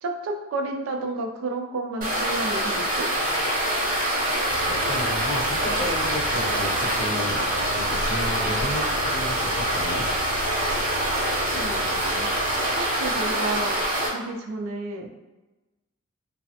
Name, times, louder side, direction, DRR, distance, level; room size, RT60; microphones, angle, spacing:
voice 1, 0.0-3.1 11.5-12.3 12.8-13.8 14.1-15.1, right 2 dB, 80° right, 3 dB, 0.4 m, -31 dB
sound 1, 2.0-14.1, right 1 dB, 40° right, 0.6 m, -25 dB
sound 2, 4.5-12.7, left 1 dB, 90° left, 0.5 m, -39 dB
voice 2, 4.6-10.1, left 1 dB, 25° left, -3 dB, 0.5 m, -32 dB
3.1 x 2.0 x 2.7 m, 1.1 s
head